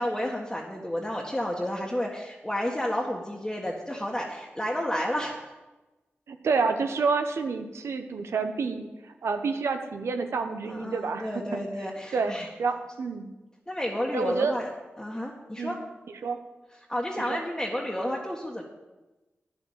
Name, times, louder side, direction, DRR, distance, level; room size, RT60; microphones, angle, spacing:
voice 1, 0.0-5.4 10.6-12.5 13.7-14.7 15.0-15.8 16.9-18.6, equal, 15° left, -3 dB, 1.7 m, -31 dB
voice 2, 6.3-11.6 12.1-12.3 12.6-13.3 14.1-14.5 15.6-15.8 16.2-16.4 17.3-17.4, right 4 dB, 85° right, 7 dB, 0.9 m, -28 dB
9.9 x 7.5 x 7.5 m, 1.1 s
cardioid pair, 50°, 4 cm